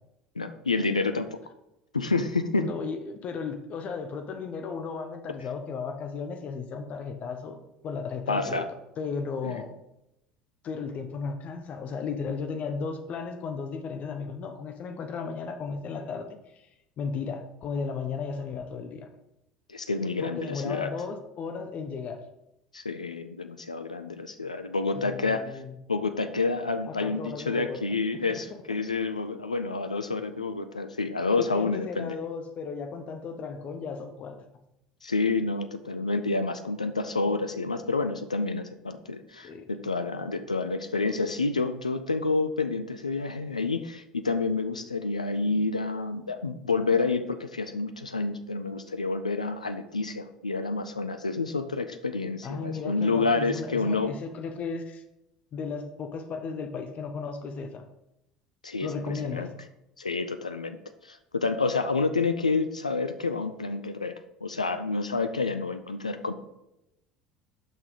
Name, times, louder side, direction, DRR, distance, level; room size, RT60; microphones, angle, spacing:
voice 1, 0.4-1.4 1.9-2.7 8.3-8.7 9.4-9.6 19.7-20.9 22.7-25.4 25.9-32.2 35.0-54.2 58.6-59.5 60.0-60.8 61.0-66.3, left 3 dB, 85° left, 9 dB, 0.4 m, -29 dB
voice 2, 2.5-7.6 7.8-8.6 9.0-9.8 10.6-16.4 17.0-19.1 20.2-22.2 25.0-25.8 27.0-27.8 28.3-28.4 31.4-34.4 39.4-39.7 52.4-55.0 55.5-57.8 58.8-59.5, left 5 dB, 40° left, 6 dB, 0.9 m, -35 dB
6.6 x 5.9 x 5.1 m, 0.87 s
figure-of-eight pair, 65°, 4 cm